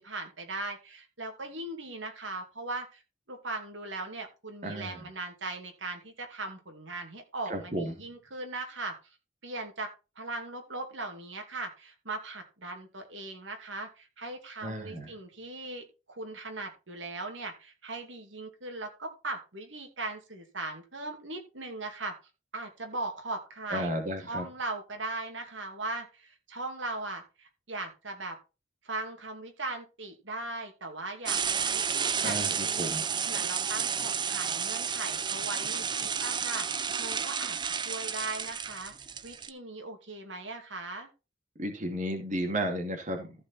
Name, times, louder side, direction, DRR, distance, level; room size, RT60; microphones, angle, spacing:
voice 1, 0.0-3.0 3.3-9.0 9.4-22.1 22.5-23.9 24.2-28.4 28.8-32.9 33.3-38.9 39.2-41.1, right 2 dB, 90° right, 4 dB, 2.5 m, -39 dB
voice 2, 4.6-5.1 7.5-8.0 14.6-15.1 23.7-24.4 32.2-33.0 41.6-43.3, right 1 dB, 40° right, 3 dB, 2.3 m, -33 dB
sound 1, 31.3-39.5, right 7 dB, 25° right, 0.6 m, -31 dB
14.5 x 5.2 x 4.2 m, 0.29 s
head